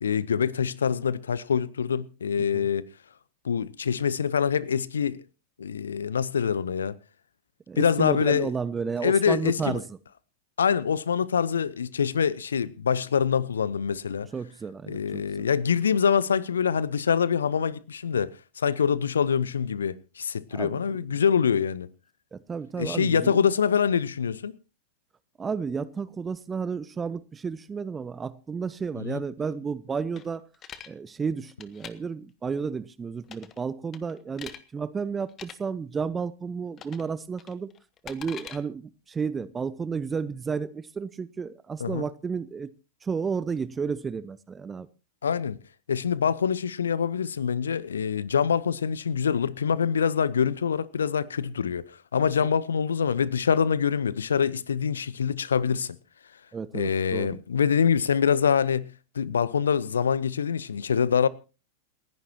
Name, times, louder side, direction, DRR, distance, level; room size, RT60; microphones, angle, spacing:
voice 1, 0.0-2.8 3.4-5.2 5.6-7.0 7.8-8.5 9.0-9.8 10.6-14.3 14.9-18.3 18.6-21.9 22.8-24.5 29.0-29.2 41.8-42.0 45.2-45.6 45.9-56.0 56.7-58.9 59.1-61.3, left 7 dB, 70° left, 0.7 m, -25 dB
voice 2, 2.4-2.7 7.7-9.8 14.3-15.5 20.5-20.8 22.3-23.3 25.4-30.4 30.9-37.7 38.0-42.7 43.0-44.9 56.5-57.4, right 5 dB, 15° right, 0.6 m, -32 dB
sound 1, 30.2-30.9 31.5-31.9 33.2-33.6 33.9-34.6 35.3-35.5 36.8-37.1 37.4-38.6, left 9 dB, 30° left, 1.2 m, -43 dB
28.5 x 11.0 x 2.9 m
figure-of-eight pair, 90°, 0 cm